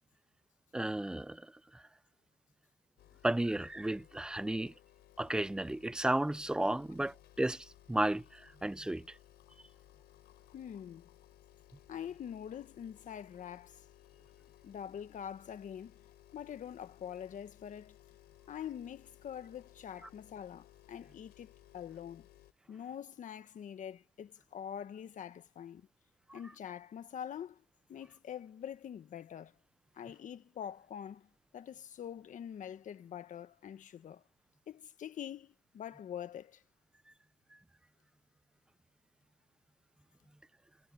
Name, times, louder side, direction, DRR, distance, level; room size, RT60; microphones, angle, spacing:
voice 1, 0.7-1.8 3.2-4.7 5.2-9.1 26.3-26.4, right 1 dB, 5° right, 0.4 m, -33 dB
sound 1, 3.0-22.5, left 14 dB, 75° left, 5.8 m, -61 dB
voice 2, 10.5-11.1 11.9-13.8 14.6-16.0 16.3-18.0 18.5-22.3 22.7-25.9 26.3-27.6 27.9-29.5 29.9-31.3 31.5-34.2 34.7-36.6, left 9 dB, 50° left, 1.6 m, -45 dB
cardioid pair, 110°, 17 cm